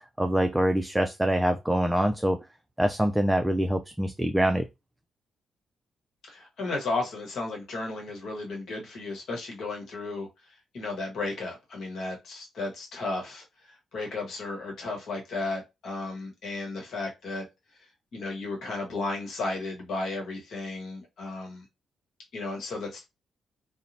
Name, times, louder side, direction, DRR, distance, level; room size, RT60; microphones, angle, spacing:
voice 1, 0.2-2.4 2.8-4.7, equal, 10° right, 0.3 m, -24 dB
voice 2, 6.3-10.3 10.7-17.4 18.1-21.6 22.3-23.0, left 3 dB, 70° left, 1.0 m, -34 dB
2.8 x 2.1 x 2.6 m
hypercardioid pair, 45°, 0 cm